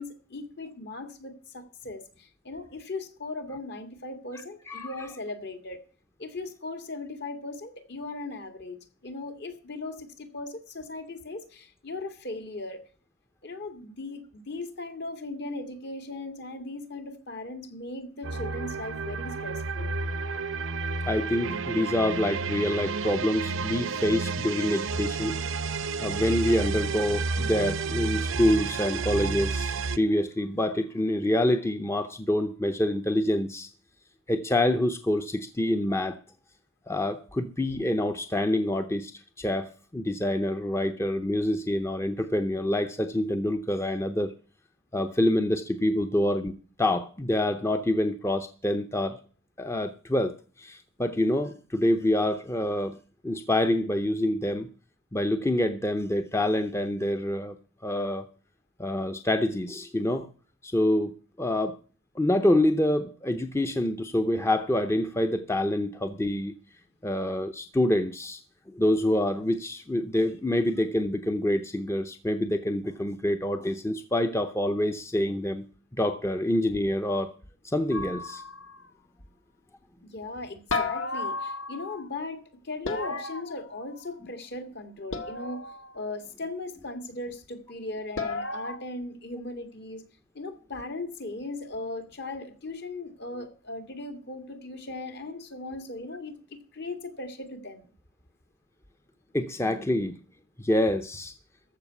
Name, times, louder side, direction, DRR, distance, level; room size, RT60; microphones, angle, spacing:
voice 1, 0.0-5.8 6.2-12.8 13.4-19.9 80.0-85.6 85.9-90.0 90.3-96.4 96.7-97.9, left 2 dB, 55° left, 2.0 m, -38 dB
sound 1, 18.2-30.0, right 4 dB, 85° right, 0.8 m, -31 dB
voice 2, 21.1-25.4 26.0-33.7 34.3-36.2 36.9-39.1 39.4-44.3 44.9-49.2 49.6-53.0 53.2-54.7 55.1-57.6 57.8-58.2 58.8-60.3 60.6-61.8 62.1-66.5 67.0-68.4 68.7-75.6 76.0-77.3 77.6-78.4 99.3-100.2 100.6-101.3, left 1 dB, 15° left, 0.6 m, -26 dB
sound 2, 77.9-78.8 80.7-82.1 82.8-84.1 85.1-86.0 88.2-88.8, left 3 dB, 90° left, 1.7 m, -33 dB
14.5 x 5.6 x 8.1 m
head